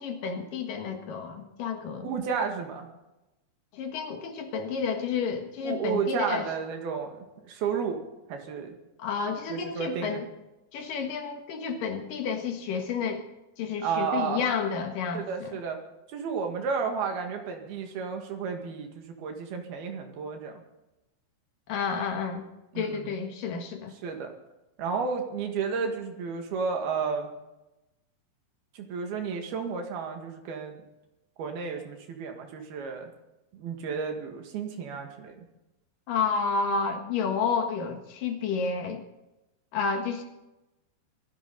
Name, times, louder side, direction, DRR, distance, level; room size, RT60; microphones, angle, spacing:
voice 1, 0.0-2.1 3.7-6.5 9.0-10.3 10.7-13.2 13.6-15.6 21.7-22.5 22.7-23.9 36.1-39.0 39.7-40.2, left 5 dB, 60° left, 4 dB, 2.7 m, -30 dB
voice 2, 2.0-2.9 5.6-8.0 8.3-8.7 9.5-10.2 13.8-14.4 15.1-15.8 16.1-20.6 22.7-23.1 24.0-24.3 24.8-27.3 28.7-30.8 31.4-33.1 33.5-35.4, right 6 dB, 60° right, 3 dB, 3.5 m, -32 dB
25.0 x 11.5 x 4.1 m, 0.96 s
omnidirectional pair, 5.4 m